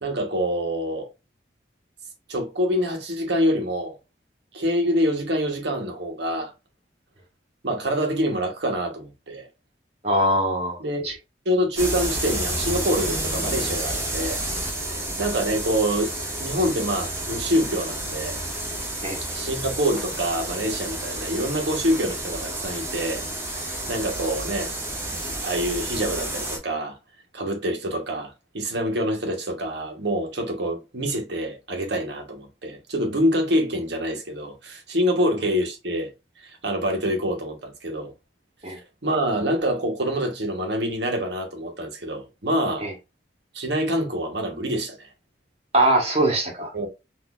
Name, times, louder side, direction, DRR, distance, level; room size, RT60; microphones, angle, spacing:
voice 1, 0.0-1.1 2.3-4.0 4.5-6.5 7.6-9.5 10.8-11.2 11.4-14.4 14.8-16.1 16.4-18.4 19.3-23.3 23.5-24.7 25.3-27.0 27.3-36.1 36.4-38.1 38.7-38.8 39.0-42.9 43.5-45.1 46.7-46.9, equal, 65° right, 1.0 m, -26 dB
voice 2, 10.0-10.8 11.0-11.1 15.0-15.1 19.0-19.2 38.6-38.8 42.8-42.9 45.7-46.7, right 1 dB, 35° right, 1.2 m, -22 dB
sound 1, 11.8-26.6, right 1 dB, 15° right, 0.9 m, -30 dB
3.9 x 2.6 x 2.4 m
head